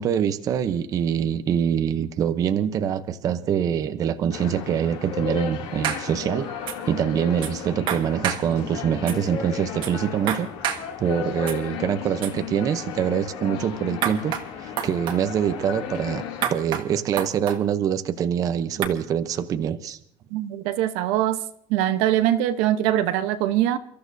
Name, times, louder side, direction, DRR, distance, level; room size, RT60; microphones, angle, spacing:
voice 1, 0.0-6.5 6.9-10.5 11.0-16.2 16.5-20.0, right 8 dB, 30° right, 0.7 m, -24 dB
sound 1, 4.3-16.5, left 8 dB, 60° left, 2.7 m, -34 dB
sound 2, 5.8-6.0 6.7-6.8 7.4-7.5 7.9-8.4 9.1-9.2 9.8-9.9 10.3-10.8 11.5-11.6 12.2-12.3 14.0-14.4 14.8-15.2 16.4-16.8 17.2-17.6 18.8-18.9, right 9 dB, 50° right, 1.5 m, -27 dB
voice 2, 20.3-21.4 21.7-23.8, right 12 dB, 65° right, 0.9 m, -22 dB
29.5 x 13.5 x 2.7 m
cardioid pair, 160°, 11 cm